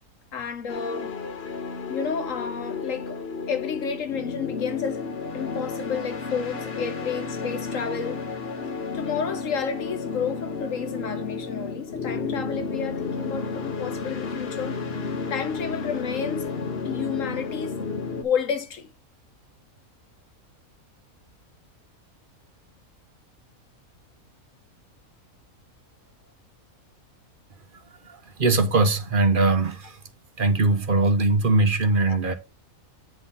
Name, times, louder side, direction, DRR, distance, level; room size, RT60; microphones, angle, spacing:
voice 1, 0.3-1.2 1.9-8.2 8.9-16.5 16.8-17.8 18.2-18.9 32.1-32.2, left 6 dB, 65° left, 1.5 m, -31 dB
sound 1, 0.7-18.2, left 4 dB, 45° left, 1.5 m, -32 dB
voice 2, 28.1-30.0 30.4-32.3, right 3 dB, 40° right, 1.1 m, -21 dB
9.1 x 3.8 x 5.5 m
omnidirectional pair, 1.5 m